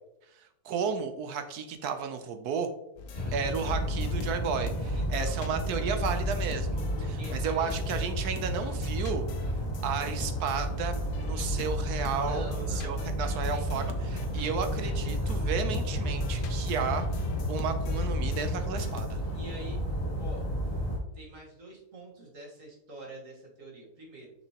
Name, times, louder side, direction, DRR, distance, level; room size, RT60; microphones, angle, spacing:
voice 1, 0.6-2.7 3.3-6.8 7.1-9.5 9.8-19.2, right 6 dB, 75° right, 8 dB, 1.1 m, -33 dB
sound 1, 3.0-8.1 8.4-19.5, left 4 dB, 80° left, 1.3 m, -44 dB
sound 2, 3.1-21.0, equal, 35° left, 2.4 m, -31 dB
voice 2, 3.1-3.7 4.9-5.4 6.9-7.8 12.2-13.6 14.0-14.3 14.6-15.5 19.3-19.8 20.2-20.5 21.1-24.3, right 1 dB, 55° right, -2 dB, 1.8 m, -46 dB
6.5 x 6.0 x 2.9 m, 0.87 s
omnidirectional pair, 1.8 m